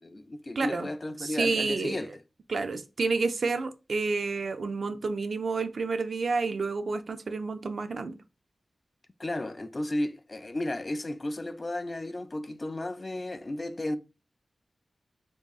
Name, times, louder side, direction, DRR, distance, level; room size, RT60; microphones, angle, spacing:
voice 1, 0.0-2.1 9.2-14.0, left 1 dB, 35° left, 0.3 m, -33 dB
voice 2, 0.6-0.9 1.2-2.0 2.5-8.1, right 4 dB, 70° right, 0.4 m, -29 dB
4.5 x 2.8 x 2.3 m
wide cardioid pair, 90°, 0 cm